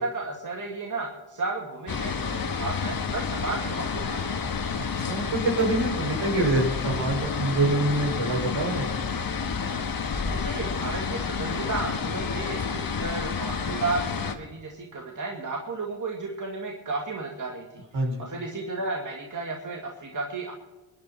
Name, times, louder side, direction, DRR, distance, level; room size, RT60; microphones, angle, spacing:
voice 1, 0.0-4.4 10.2-20.5, right 3 dB, 35° right, 0 dB, 2.4 m, -33 dB
sound 1, 1.9-14.4, left 5 dB, 45° left, 1.6 m, -30 dB
voice 2, 4.8-9.0 17.9-18.3, right 2 dB, 65° right, 0 dB, 5.9 m, -26 dB
22.0 x 10.5 x 4.3 m, 1.2 s
cardioid pair, 65°, 50 cm